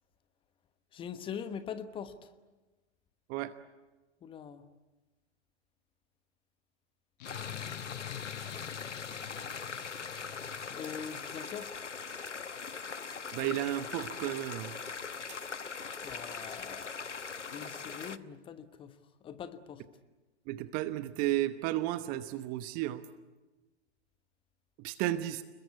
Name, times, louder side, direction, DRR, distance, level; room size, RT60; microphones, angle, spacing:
voice 1, 0.9-2.1 4.2-4.6 10.7-11.7 16.0-16.9 17.5-18.9 19.2-19.8, left 7 dB, 15° left, 12 dB, 1.1 m, -42 dB
sound 1, 7.2-18.2, left 5 dB, 80° left, 1.1 m, -41 dB
sound 2, 7.2-11.7, left 13 dB, 35° left, 1.0 m, -45 dB
voice 2, 13.3-14.7 20.5-23.0 24.8-25.4, right 14 dB, 25° right, 13 dB, 1.0 m, -33 dB
29.0 x 21.5 x 8.5 m, 1.2 s
figure-of-eight pair, 115°, 35 cm